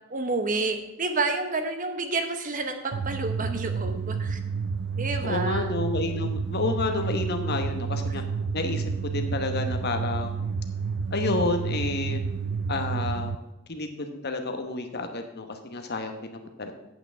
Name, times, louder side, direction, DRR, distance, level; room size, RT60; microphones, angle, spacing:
voice 1, 0.1-4.4 5.0-5.7, right 3 dB, 40° right, 7 dB, 1.0 m, -29 dB
sound 1, 2.9-13.4, right 5 dB, 55° right, 0.4 m, -30 dB
voice 2, 5.2-8.2 8.5-10.3 11.1-12.2 12.7-13.3 13.7-16.7, left 3 dB, 50° left, 6 dB, 1.0 m, -30 dB
8.5 x 5.9 x 7.1 m, 0.94 s
head